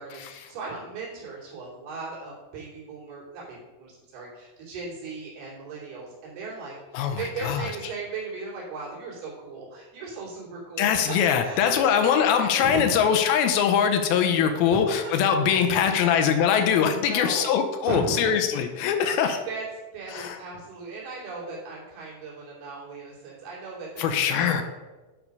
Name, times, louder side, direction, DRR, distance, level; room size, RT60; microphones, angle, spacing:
voice 1, 0.0-11.9 12.6-13.0 14.4-14.9 15.5-15.9 16.4-17.5 17.8-18.3 18.7-19.6 19.9-24.6, right 4 dB, 75° right, -5 dB, 4.9 m, -37 dB
voice 2, 10.8-19.4 20.1-20.4 24.0-24.6, left 8 dB, 80° left, 6 dB, 2.5 m, -22 dB
10.5 x 4.8 x 5.3 m, 1.2 s
omnidirectional pair, 4.5 m